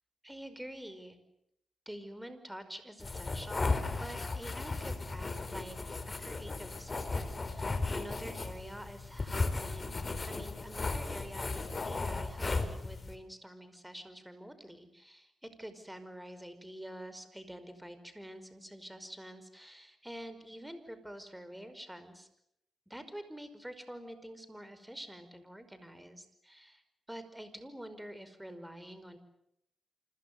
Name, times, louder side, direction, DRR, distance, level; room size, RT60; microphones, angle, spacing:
voice 1, 0.2-1.2 1.8-22.3 22.9-26.8 27.1-29.2, equal, 5° right, 10 dB, 5.2 m, -47 dB
sound 1, 3.0-13.1, left 3 dB, 30° left, 4.3 m, -36 dB
29.5 x 26.0 x 6.9 m, 0.76 s
cardioid pair, 90°, 0 cm